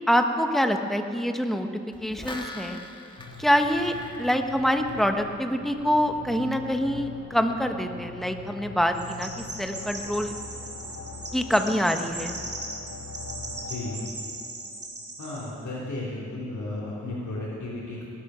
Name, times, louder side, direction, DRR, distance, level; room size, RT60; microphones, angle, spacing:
voice 1, 0.1-2.8 3.4-10.3 11.3-12.4, equal, ahead, 5 dB, 1.2 m, -25 dB
sound 1, 1.9-5.5 5.8-5.9, left 2 dB, 15° left, 1.9 m, -41 dB
sound 2, 3.2-14.1, left 3 dB, 55° left, 2.1 m, -42 dB
Chirp tweet, 8.9-15.5, right 2 dB, 50° right, 3.4 m, -38 dB
voice 2, 13.7-14.0 15.2-18.1, left 2 dB, 80° left, -9 dB, 3.4 m, -34 dB
19.5 x 11.5 x 6.3 m, 2.5 s
wide cardioid pair, 70°, 29 cm